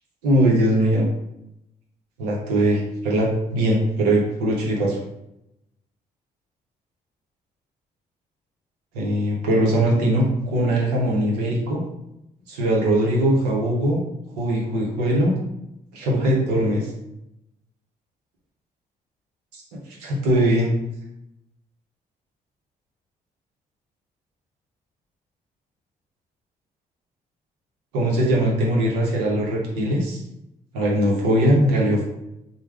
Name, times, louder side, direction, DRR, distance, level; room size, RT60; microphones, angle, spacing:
voice 1, 0.2-1.0 2.2-5.0 8.9-11.8 12.5-14.0 14.4-15.3 15.9-16.9 20.0-20.7 27.9-30.2 30.7-32.0, right 1 dB, 85° right, -2 dB, 0.7 m, -20 dB
3.2 x 2.1 x 3.3 m, 0.86 s
hypercardioid pair, 45°, 20 cm